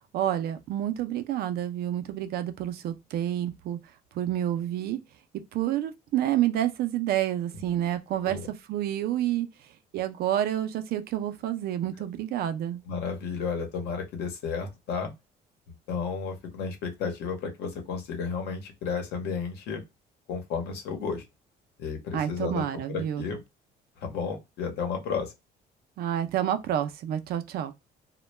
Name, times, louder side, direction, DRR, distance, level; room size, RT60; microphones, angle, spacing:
voice 1, 0.1-3.8 4.1-5.0 5.5-8.4 8.7-9.5 9.9-12.8 22.1-23.2 26.0-27.7, right 11 dB, 70° right, 0.5 m, -29 dB
voice 2, 12.9-15.1 15.9-19.8 20.3-21.2 21.8-23.4 24.0-25.3, left 5 dB, 80° left, 0.9 m, -32 dB
2.2 x 2.1 x 3.1 m
cardioid pair, 110°, 17 cm